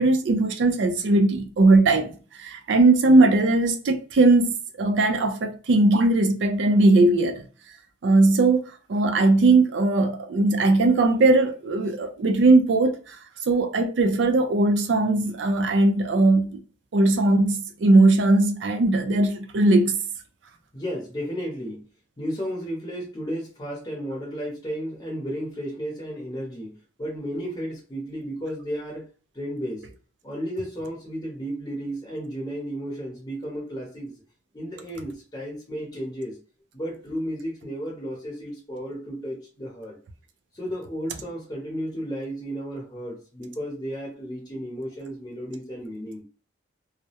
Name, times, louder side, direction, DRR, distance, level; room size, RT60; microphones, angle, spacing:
voice 1, 0.0-2.1 2.4-7.4 8.0-8.6 8.9-13.2 13.5-16.6 16.9-19.9, right 2 dB, 80° right, 0.4 m, -19 dB
voice 2, 20.7-21.8 22.2-26.7 27.0-29.1 29.3-29.8 30.2-34.1 34.5-36.4 36.7-40.0 40.5-46.2, equal, 20° left, 0.7 m, -33 dB
2.2 x 2.0 x 2.7 m
head